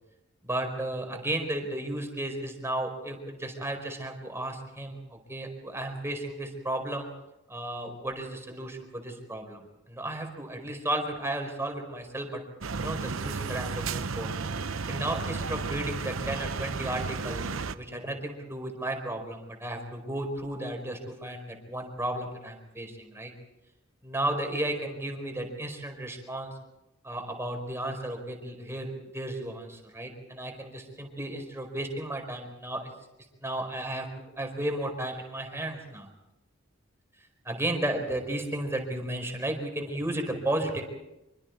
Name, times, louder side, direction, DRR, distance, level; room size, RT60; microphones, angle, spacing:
voice 1, 0.4-7.1 7.5-9.6 9.9-12.4 12.7-14.3 14.9-17.5 17.7-23.3 24.0-26.5 27.0-32.9 33.4-36.1 37.4-40.8, right 1 dB, 15° right, 3 dB, 4.6 m, -34 dB
sound 1, 12.6-17.8, right 4 dB, 85° right, 0.8 m, -33 dB
26.0 x 24.0 x 4.7 m, 0.93 s
head